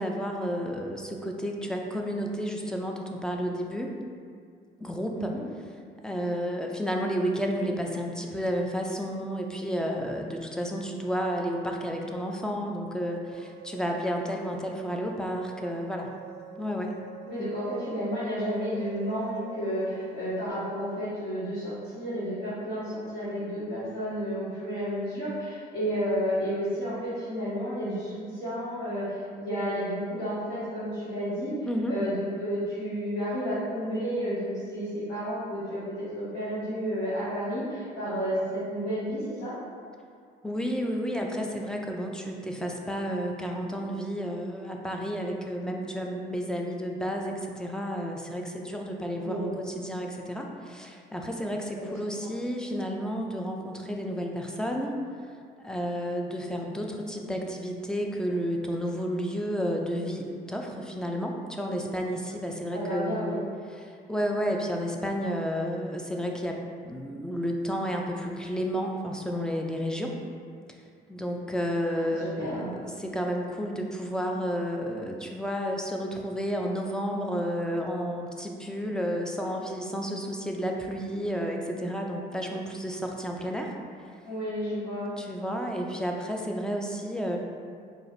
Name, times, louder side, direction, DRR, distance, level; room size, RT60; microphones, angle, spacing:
voice 1, 0.0-3.9 4.8-5.3 6.0-16.1 16.6-16.9 31.6-32.0 40.4-55.0 55.6-63.4 63.7-70.2 71.1-83.7 84.0-84.1 85.2-87.4, equal, 5° left, 1 dB, 0.3 m, -31 dB
voice 2, 5.1-5.4 17.3-31.5 31.9-39.5 49.2-49.5 51.9-52.3 62.7-63.4 72.1-72.7 84.2-85.1, equal, 65° left, -14 dB, 1.4 m, -31 dB
sound 1, 13.3-20.5, right 10 dB, 85° right, 0.4 m, -48 dB
4.6 x 2.5 x 2.6 m, 2.2 s
cardioid pair, 110°, 17 cm